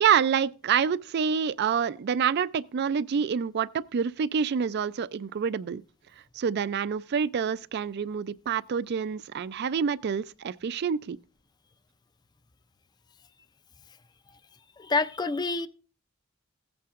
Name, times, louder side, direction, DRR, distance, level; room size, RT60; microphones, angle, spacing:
voice 1, 0.0-5.8 6.4-11.2, right 7 dB, 50° right, 0.3 m, -27 dB
voice 2, 14.8-15.7, left 3 dB, 20° left, 0.4 m, -27 dB
16.5 x 8.5 x 2.4 m
head